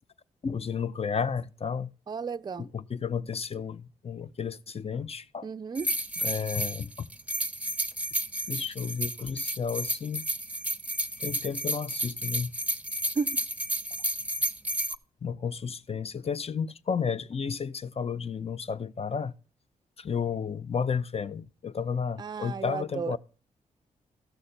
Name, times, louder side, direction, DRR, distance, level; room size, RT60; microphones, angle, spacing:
voice 1, 0.4-1.9 2.6-5.5 6.2-7.1 8.5-10.2 11.2-12.5 15.2-19.3 20.0-23.2, left 6 dB, 40° left, 0.6 m, -32 dB
voice 2, 2.1-2.7 5.4-5.9 13.2-13.4 22.2-23.2, right 5 dB, 30° right, 0.4 m, -33 dB
sound 1, 5.7-14.9, right 1 dB, 10° right, 0.8 m, -31 dB
14.5 x 6.5 x 4.2 m
supercardioid pair, 45°, 15 cm